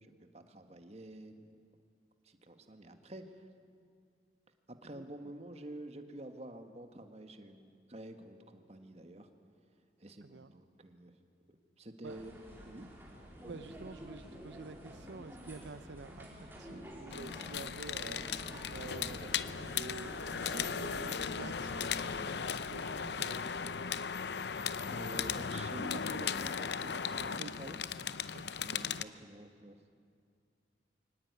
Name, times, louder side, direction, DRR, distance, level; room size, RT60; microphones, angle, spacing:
voice 1, 0.0-1.6 2.2-3.4 4.7-9.3 10.0-11.2 11.8-12.3 12.6-12.9 24.8-27.8 28.6-29.9, right 1 dB, 35° right, 7 dB, 1.5 m, -49 dB
voice 2, 10.2-10.5 12.0-12.2 13.4-18.4 18.7-23.9 27.3-27.5 28.3-28.5, right 3 dB, 75° right, 11 dB, 0.6 m, -49 dB
sound 1, 12.0-22.3, equal, 10° right, 3.5 m, -49 dB
sound 2, 17.1-29.0, left 7 dB, 65° left, 0.6 m, -37 dB
23.5 x 18.5 x 9.5 m, 2.3 s
head